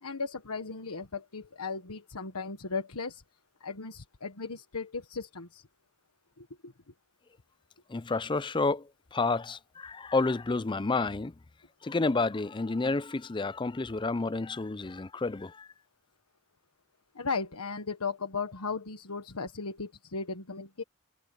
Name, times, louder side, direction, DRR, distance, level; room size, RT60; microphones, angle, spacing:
voice 1, 0.0-3.2 3.6-5.7 6.4-6.7 17.1-20.8, left 4 dB, 85° left, 1.4 m, -36 dB
voice 2, 7.9-11.3 11.8-15.7, left 3 dB, 20° left, 0.5 m, -30 dB
head